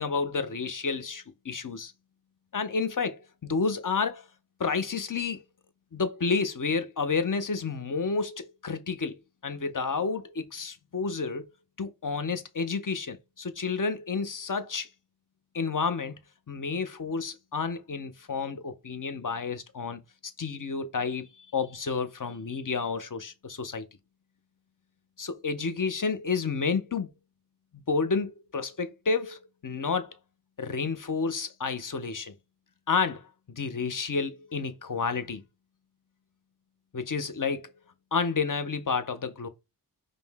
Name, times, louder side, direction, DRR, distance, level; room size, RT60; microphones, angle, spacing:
voice 1, 0.0-1.9 2.5-4.3 4.6-5.4 5.9-9.2 9.4-11.5 11.8-14.9 15.5-16.2 16.5-20.0 20.4-23.9 25.2-27.1 27.9-30.1 30.6-32.3 32.9-35.4 36.9-37.7 38.1-39.5, left 4 dB, 50° left, 0.6 m, -30 dB
5.1 x 2.1 x 3.4 m
wide cardioid pair, 55°, 41 cm